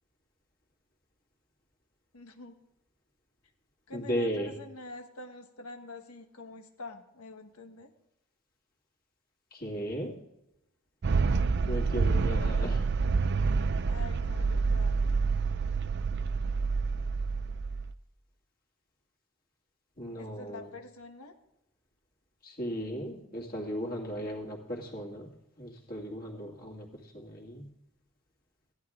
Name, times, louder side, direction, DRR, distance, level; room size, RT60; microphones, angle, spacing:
voice 1, 2.1-2.6 3.9-7.9 13.8-15.2 20.2-21.3, left 2 dB, 85° left, 6 dB, 1.4 m, -46 dB
voice 2, 3.9-4.5 9.5-10.1 11.7-12.8 20.0-20.7 22.4-25.3 25.6-26.9 27.1-27.7, equal, 45° left, -2 dB, 2.5 m, -36 dB
sound 1, 11.0-17.9, right 4 dB, 50° right, 0.4 m, -28 dB
15.0 x 11.5 x 3.7 m, 0.86 s
head